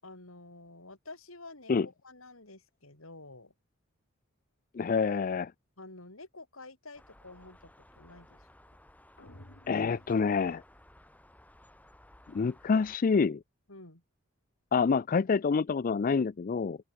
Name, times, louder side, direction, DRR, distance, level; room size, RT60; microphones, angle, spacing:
voice 1, 0.0-1.7 2.0-3.5 5.8-8.5 13.7-14.0, left 2 dB, 75° left, 7.1 m, -49 dB
voice 2, 4.7-5.5 9.7-10.6 12.3-13.4 14.7-16.8, left 5 dB, 40° left, 0.4 m, -27 dB
sound 1, 6.9-13.0, left 1 dB, 5° left, 2.5 m, -58 dB
sound 2, 9.2-11.3, left 1 dB, 55° left, 3.5 m, -56 dB
open air
head